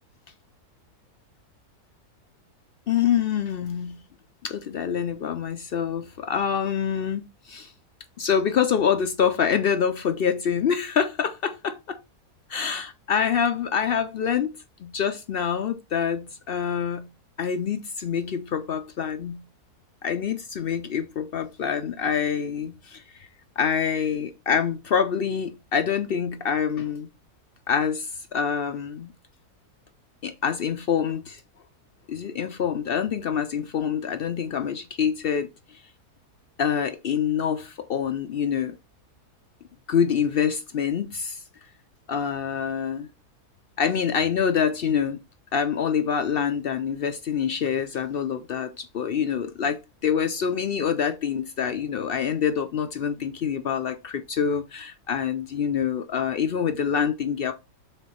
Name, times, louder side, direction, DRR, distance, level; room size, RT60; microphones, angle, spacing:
voice 1, 2.9-4.0 4.4-7.7 8.2-12.0 12.5-17.1 17.4-19.4 20.0-23.3 23.6-27.1 27.7-29.1 30.2-31.4 32.1-35.8 36.6-38.8 39.9-41.4 42.1-43.1 43.8-45.2 45.5-57.5, left 7 dB, 80° left, 0.5 m, -26 dB
7.1 x 4.0 x 4.2 m
omnidirectional pair, 1.7 m